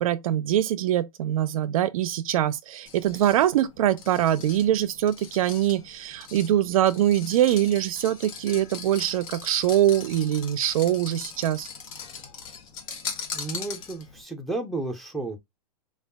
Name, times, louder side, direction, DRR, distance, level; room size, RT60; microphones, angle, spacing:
voice 1, 0.0-11.7, right 12 dB, 60° right, 0.5 m, -23 dB
sound 1, 2.9-14.2, left 6 dB, 55° left, 1.0 m, -40 dB
voice 2, 13.3-15.4, right 2 dB, ahead, 0.6 m, -32 dB
4.9 x 2.4 x 2.2 m
hypercardioid pair, 130°, 20 cm